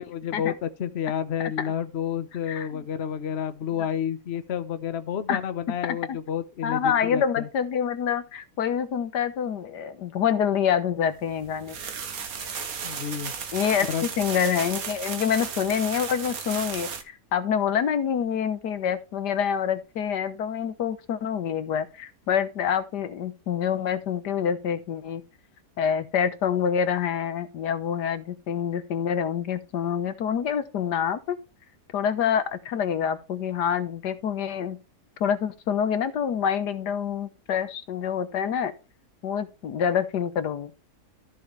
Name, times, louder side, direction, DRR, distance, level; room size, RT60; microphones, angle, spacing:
voice 1, 0.0-7.5 12.8-13.3 13.9-14.1, left 8 dB, 45° left, 1.1 m, -30 dB
voice 2, 2.5-2.8 5.3-5.4 5.8-6.2 6.6-11.8 13.5-25.2 25.8-31.4 31.9-34.8 35.2-38.7 39.2-40.7, left 8 dB, 80° left, 1.6 m, -26 dB
sound 1, 11.2-17.0, right 6 dB, 60° right, 1.7 m, -34 dB
13.5 x 6.5 x 3.3 m
omnidirectional pair, 1.7 m